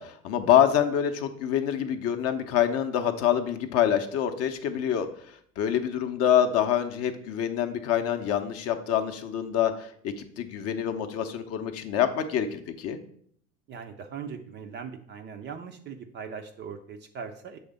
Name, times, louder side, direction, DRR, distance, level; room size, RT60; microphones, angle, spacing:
voice 1, 0.0-5.1 5.6-13.0, left 9 dB, 35° left, 8 dB, 0.7 m, -26 dB
voice 2, 13.7-17.6, right 6 dB, 25° right, 6 dB, 0.5 m, -40 dB
7.0 x 3.3 x 5.1 m, 0.63 s
figure-of-eight pair, 80°, 44 cm